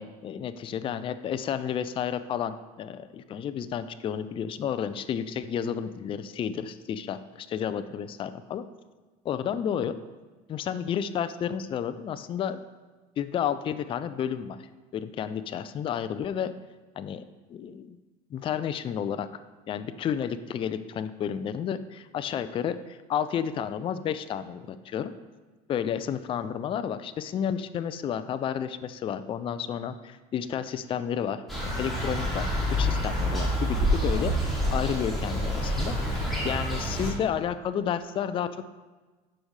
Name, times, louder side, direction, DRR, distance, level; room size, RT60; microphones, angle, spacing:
voice 1, 0.0-8.6 9.2-9.9 10.5-12.6 13.2-14.6 14.9-16.5 17.0-17.2 17.5-18.0 18.3-19.4 19.7-25.1 25.7-34.3 34.7-36.0 36.4-38.5, left 8 dB, 30° left, 12 dB, 0.4 m, -31 dB
sound 1, 31.5-37.1, equal, ahead, 2.7 m, -27 dB
11.5 x 5.0 x 3.2 m, 1.3 s
cardioid pair, 125°, 18 cm